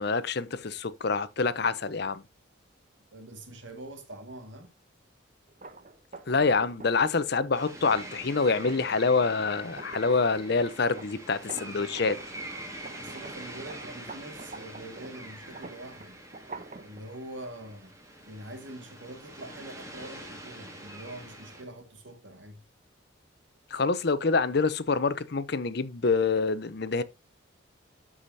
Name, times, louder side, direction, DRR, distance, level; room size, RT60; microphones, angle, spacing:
voice 1, 0.0-2.2 6.3-12.2 23.7-27.0, left 4 dB, 55° left, 0.6 m, -26 dB
voice 2, 3.1-4.7 11.5-11.8 12.7-16.2 16.8-18.0 18.2-22.6, right 1 dB, 70° right, 2.0 m, -44 dB
sound 1, 5.5-12.5 12.8-17.0, right 3 dB, 40° right, 0.8 m, -46 dB
sound 2, 7.5-21.6, right 1 dB, 15° right, 1.7 m, -45 dB
13.0 x 5.0 x 2.7 m
head